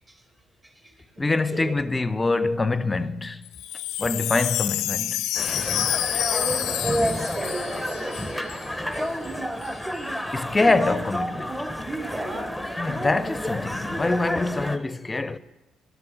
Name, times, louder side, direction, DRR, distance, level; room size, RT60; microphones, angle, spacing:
voice 1, 1.2-3.4 4.0-5.2 10.3-11.6 12.8-15.4, left 3 dB, 25° left, 0.6 m, -25 dB
Wind chime, 3.5-8.7 8.9-9.0 9.2-9.7, left 13 dB, 75° left, 0.4 m, -28 dB
sound 1, 5.3-14.8, equal, ahead, 1.0 m, -31 dB
voice 2, 6.3-8.7 8.9-9.4 12.1-12.4, right 1 dB, 30° right, 3.8 m, -30 dB
11.5 x 7.7 x 9.0 m
hypercardioid pair, 55°, 0 cm